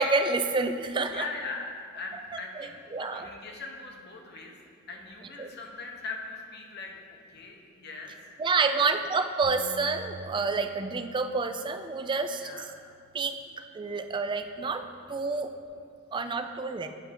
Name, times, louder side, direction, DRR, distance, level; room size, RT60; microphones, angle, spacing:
voice 1, 0.0-1.2 2.9-3.3 5.4-5.5 8.4-12.5 13.1-13.4 13.7-14.8 15.1-15.5 16.1-16.9, right 4 dB, 25° right, 7 dB, 0.3 m, -28 dB
voice 2, 1.1-4.5 4.9-8.1 8.5-8.8 12.4-12.7, left 3 dB, 55° left, 1 dB, 0.9 m, -40 dB
Bass guitar, 9.4-13.9 14.5-15.7, right 2 dB, 80° right, 0.9 m, -51 dB
9.1 x 5.9 x 3.4 m, 2.2 s
head